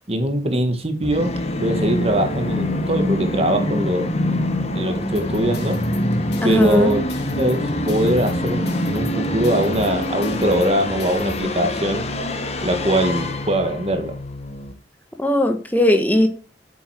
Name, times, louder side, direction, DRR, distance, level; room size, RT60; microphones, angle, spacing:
voice 1, 0.1-4.1 4.7-5.8 6.4-7.0 7.4-12.0 12.6-14.2, right 1 dB, 35° right, 1.7 m, -22 dB
Musical instrument, 1.0-14.7, left 1 dB, 35° left, 1.4 m, -25 dB
sound 1, 5.2-11.4, left 1 dB, 65° left, 3.2 m, -37 dB
voice 2, 6.4-7.0 15.2-16.3, left 1 dB, 10° left, 1.3 m, -17 dB
9.0 x 7.5 x 4.9 m
head